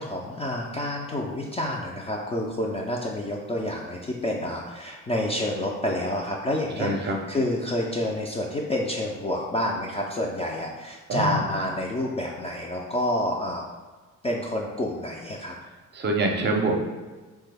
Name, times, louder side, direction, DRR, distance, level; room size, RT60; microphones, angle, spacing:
voice 1, 0.0-13.6 14.2-15.5, left 1 dB, 20° left, -2 dB, 0.3 m, -28 dB
voice 2, 6.8-7.2 11.1-11.5 15.9-16.8, right 2 dB, 35° right, 1 dB, 0.6 m, -25 dB
3.2 x 2.2 x 3.3 m, 1.3 s
cardioid pair, 90°, 30 cm